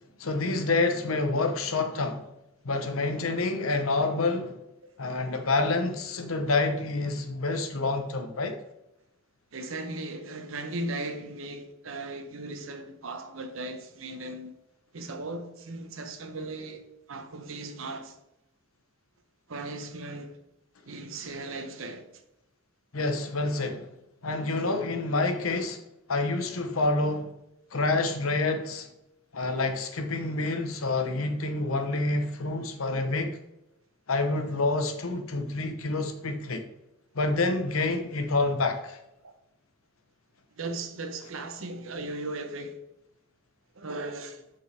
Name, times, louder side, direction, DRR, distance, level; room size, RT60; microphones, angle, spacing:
voice 1, 0.2-2.3 2.6-4.6 5.0-8.6 22.9-23.9 24.2-25.8 26.1-27.3 27.7-28.9 29.3-33.4 34.1-36.7 37.1-39.0, left 3 dB, 75° left, 0.9 m, -28 dB
voice 2, 9.5-14.5 14.9-18.2 19.5-20.4 20.8-22.2 39.2-39.4 40.6-42.8 43.7-44.4, right 2 dB, 70° right, 0.8 m, -37 dB
6.8 x 5.4 x 3.4 m
head